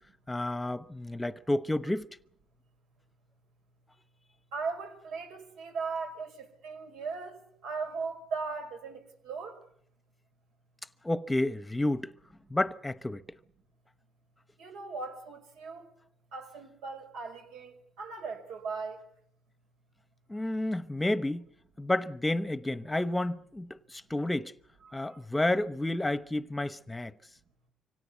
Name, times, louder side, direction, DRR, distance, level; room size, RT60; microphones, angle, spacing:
voice 1, 0.3-2.1 11.0-12.1 12.5-13.2 20.3-21.5 21.8-24.5 24.9-27.1, left 1 dB, 10° left, 1.0 m, -30 dB
voice 2, 4.5-9.0 9.2-9.6 14.6-15.9 16.3-19.0, right 4 dB, 85° right, 5.3 m, -38 dB
25.0 x 17.5 x 8.3 m
cardioid pair, 100°, 0 cm